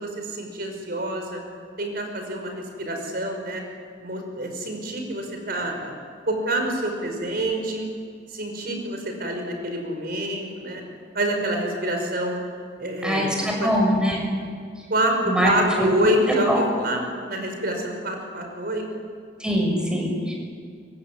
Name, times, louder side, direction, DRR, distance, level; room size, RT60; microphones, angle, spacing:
voice 1, 0.0-1.4 1.8-3.6 4.0-5.9 6.3-7.9 8.3-10.8 11.1-12.4 12.8-13.3 13.6-13.7 14.9-17.0 17.3-18.8, right 1 dB, 55° right, 3 dB, 5.4 m, -27 dB
voice 2, 13.0-14.2 15.3-15.9 16.3-16.6 19.4-20.3, equal, 5° right, 0 dB, 6.5 m, -23 dB
24.0 x 24.0 x 9.8 m, 2.2 s
head